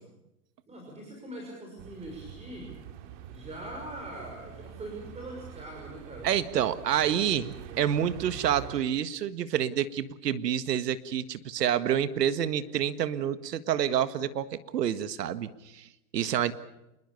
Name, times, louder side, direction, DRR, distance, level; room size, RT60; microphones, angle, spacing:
voice 1, 0.7-2.8 3.3-6.3, right 1 dB, 15° right, 1 dB, 5.9 m, -42 dB
sound 1, 1.8-8.8, right 10 dB, 50° right, 2.6 m, -45 dB
voice 2, 6.2-15.9 16.1-16.5, right 10 dB, 80° right, 13 dB, 1.7 m, -28 dB
27.5 x 21.0 x 7.0 m, 0.92 s
hypercardioid pair, 130°, 48 cm